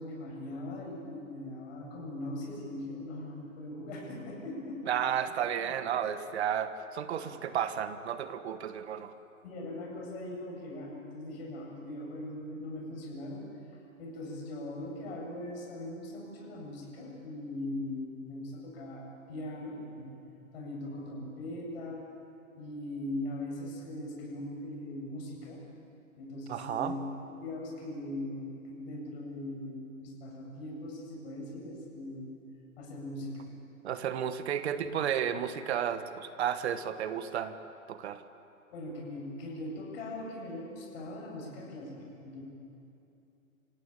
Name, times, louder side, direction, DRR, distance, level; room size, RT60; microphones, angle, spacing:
voice 1, 0.0-4.8 5.2-5.3 5.6-6.1 7.2-7.3 9.4-13.4 14.0-20.2 20.5-22.0 22.6-25.6 26.2-32.4 32.8-33.5 34.8-34.9 38.7-42.4, left 1 dB, 45° left, -1 dB, 7.7 m, -40 dB
voice 2, 4.9-9.1 26.5-26.9 33.8-37.6 37.9-38.2, right 9 dB, 50° right, 11 dB, 1.4 m, -32 dB
28.5 x 16.5 x 9.1 m, 2.8 s
hypercardioid pair, 150°, 42 cm